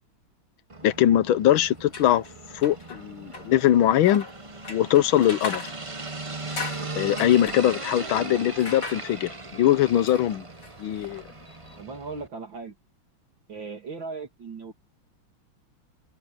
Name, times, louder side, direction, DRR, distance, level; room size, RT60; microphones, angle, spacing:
sound 1, 0.7-12.3, right 3 dB, 25° right, 0.8 m, -39 dB
voice 1, 0.8-2.2 2.5-4.3 4.7-5.7 6.9-10.4 10.8-11.2, left 12 dB, 75° left, 1.6 m, -21 dB
sound 2, 1.7-11.8, left 3 dB, 50° left, 4.6 m, -41 dB
voice 2, 8.0-8.6 11.8-12.7 13.5-14.7, right 4 dB, 65° right, 3.3 m, -38 dB
omnidirectional pair, 2.3 m